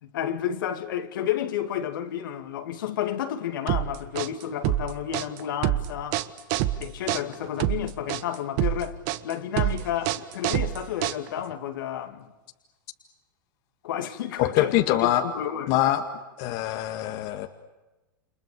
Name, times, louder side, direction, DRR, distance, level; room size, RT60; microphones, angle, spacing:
voice 1, 0.0-6.2 6.8-9.0 9.2-12.3 13.8-15.7, left 10 dB, 70° left, 2.6 m, -31 dB
sound 1, 3.7-11.5, right 14 dB, 55° right, 1.5 m, -27 dB
voice 2, 14.4-15.2 15.7-16.0 16.4-17.5, left 14 dB, 55° left, 2.0 m, -24 dB
30.0 x 27.5 x 6.9 m
hypercardioid pair, 110°, 11 cm